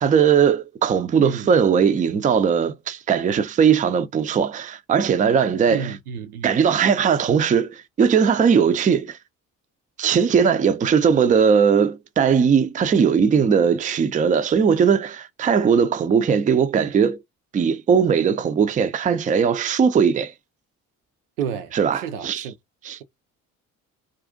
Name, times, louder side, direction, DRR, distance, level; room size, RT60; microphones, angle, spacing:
voice 1, 0.0-6.0 6.4-9.2 10.0-17.2 17.5-20.3 21.7-22.5 22.8-23.0, right 7 dB, 20° right, 0.4 m, -19 dB
voice 2, 1.2-1.5 5.7-6.6 21.4-22.5, right 7 dB, 80° right, 0.6 m, -31 dB
2.5 x 2.4 x 3.7 m
figure-of-eight pair, 50°, 44 cm